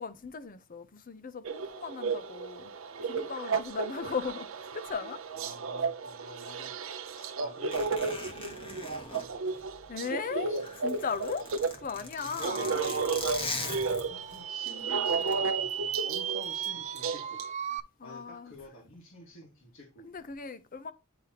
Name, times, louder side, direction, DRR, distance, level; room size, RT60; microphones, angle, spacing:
voice 1, 0.0-2.7 3.0-5.2 9.9-10.5 10.8-11.5 11.7-12.8 18.0-18.5 20.0-20.9, left 5 dB, 45° left, 0.6 m, -37 dB
sound 1, 1.4-11.8 12.2-17.5, right 4 dB, 75° right, 0.6 m, -33 dB
voice 2, 5.4-6.7 7.1-9.7 10.5-10.7 12.0-13.0 13.3-17.4 18.0-20.3, equal, 70° left, 1.9 m, -50 dB
Zipper (clothing), 7.7-10.1 10.4-14.4 15.1-15.3, left 2 dB, 25° left, 1.3 m, -40 dB
sound 2, 12.2-17.8, right 9 dB, 35° right, 0.3 m, -36 dB
9.6 x 3.4 x 2.9 m
head